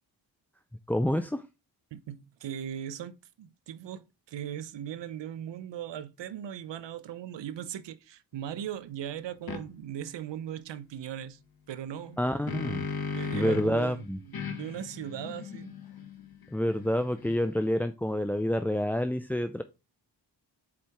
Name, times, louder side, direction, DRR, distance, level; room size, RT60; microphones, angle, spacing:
voice 1, 0.9-1.4 12.2-12.8 13.3-14.2 16.5-19.6, left 1 dB, 5° left, 0.5 m, -28 dB
voice 2, 1.9-11.4 11.7-12.2 13.1-15.7, right 10 dB, 70° right, 0.8 m, -39 dB
sound 1, 9.5-9.6 12.0-13.8 14.3-17.7, left 5 dB, 55° left, 1.4 m, -37 dB
7.2 x 4.5 x 3.5 m
supercardioid pair, 45°, 45 cm